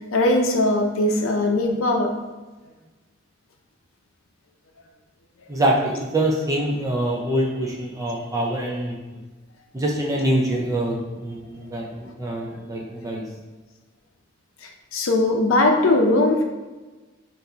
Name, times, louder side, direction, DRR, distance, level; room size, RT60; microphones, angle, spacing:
voice 1, 0.0-2.1 14.6-16.4, left 2 dB, 85° left, 3 dB, 0.6 m, -20 dB
voice 2, 5.5-9.0 9.7-13.3, right 1 dB, 15° right, -1 dB, 0.5 m, -24 dB
5.8 x 2.6 x 2.8 m, 1.2 s
head